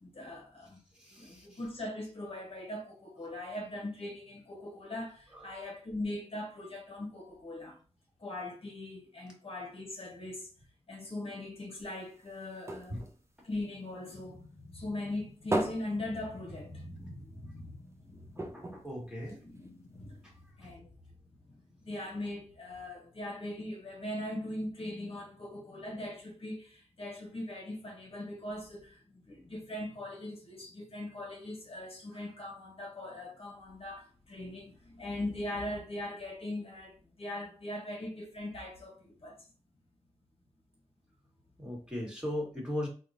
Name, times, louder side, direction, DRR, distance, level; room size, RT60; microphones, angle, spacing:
voice 1, 0.0-0.8 1.2-7.8 8.2-10.5 10.9-13.0 13.4-18.7 19.0-20.3 20.6-20.9 21.5-39.5, left 1 dB, 55° left, 0.9 m, -40 dB
voice 2, 1.0-1.6 12.9-13.0 18.4-19.4 20.6-20.7 41.6-42.9, left 1 dB, 5° right, 1.4 m, -38 dB
sound 1, 11.8-14.4 14.8-17.0 17.4-17.5 17.8-17.9 18.3-19.9 20.5-20.6, right 1 dB, 25° right, 0.5 m, -38 dB
3.6 x 2.2 x 2.6 m
cardioid pair, 60°, 12 cm